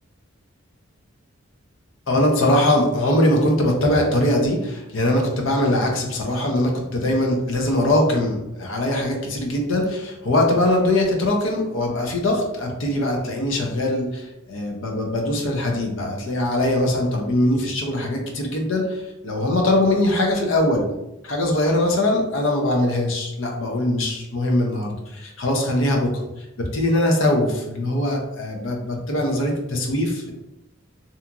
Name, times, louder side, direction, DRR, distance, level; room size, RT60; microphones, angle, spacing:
voice 1, 2.1-20.9 21.2-26.1 26.4-30.3, left 1 dB, 65° left, 1 dB, 0.5 m, -21 dB
2.8 x 2.5 x 2.3 m, 0.95 s
head